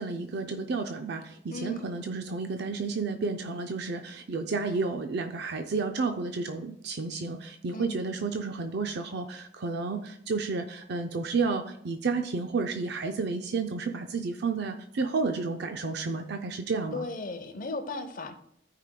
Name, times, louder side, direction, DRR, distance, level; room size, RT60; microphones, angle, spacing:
voice 1, 0.0-17.1, right 4 dB, 65° right, 6 dB, 0.5 m, -31 dB
voice 2, 1.5-1.8 7.7-8.0 16.9-18.4, left 2 dB, 50° left, 7 dB, 0.8 m, -36 dB
14.0 x 5.0 x 2.2 m, 0.72 s
head